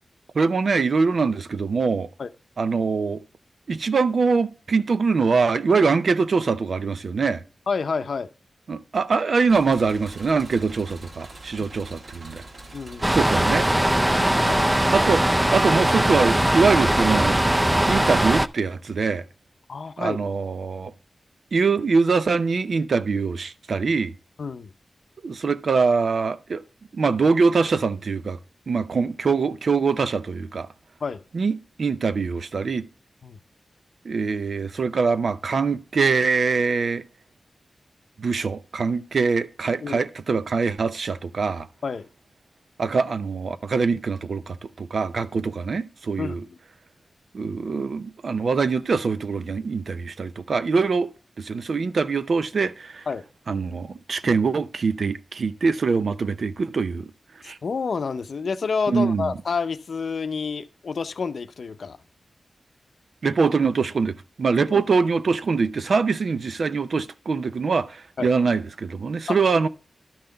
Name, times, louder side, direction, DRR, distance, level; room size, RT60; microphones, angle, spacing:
voice 1, 0.3-2.1 2.6-3.2 3.7-7.4 8.7-12.4 13.1-13.7 14.9-15.3 15.5-17.4 17.9-19.2 20.0-20.9 21.5-24.1 25.2-26.6 26.9-28.4 28.7-30.7 31.3-32.9 34.0-37.0 38.2-41.7 42.8-46.4 47.3-51.1 51.4-53.1 53.5-57.1 57.4-57.6 58.9-59.3 63.2-69.7, right 4 dB, 75° right, 0.6 m, -23 dB
voice 2, 7.7-8.3 11.6-11.7 12.7-13.1 14.4-14.7 19.7-20.2 24.4-24.7 31.0-31.2 33.2-33.4 39.8-40.0 41.8-42.1 46.2-46.4 53.1-53.2 57.6-62.0 64.7-64.8 68.2-68.3 69.3-69.4, left 5 dB, 80° left, 0.6 m, -29 dB
sound 1, 9.5-15.3, right 2 dB, 60° right, 1.9 m, -44 dB
sound 2, 13.0-18.5, right 1 dB, 15° right, 0.5 m, -20 dB
12.0 x 5.8 x 3.8 m
wide cardioid pair, 80°, 0 cm